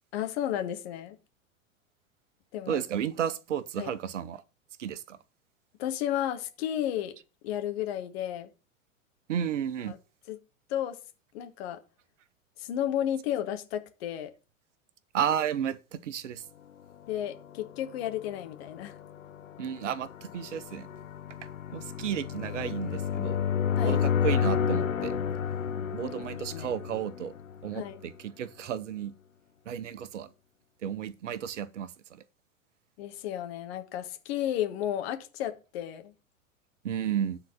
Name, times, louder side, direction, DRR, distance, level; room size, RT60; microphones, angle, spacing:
voice 1, 0.1-1.2 2.5-2.8 3.8-3.9 5.8-7.1 7.4-8.5 9.9-10.0 10.3-10.4 10.7-11.0 11.3-11.8 12.6-14.3 17.0-19.0 23.7-24.0 26.5-26.7 27.7-28.0 33.0-36.1, left 11 dB, 50° left, 1.5 m, -33 dB
voice 2, 2.7-4.4 4.8-5.2 9.3-9.9 15.1-16.4 19.6-20.9 21.4-23.4 23.8-25.1 25.9-27.3 27.6-29.1 29.7-30.3 30.8-32.2 36.8-37.4, right 9 dB, 60° right, 0.9 m, -33 dB
sound 1, 17.2-28.0, left 8 dB, 70° left, 0.8 m, -31 dB
9.5 x 4.0 x 7.3 m
figure-of-eight pair, 90°, 41 cm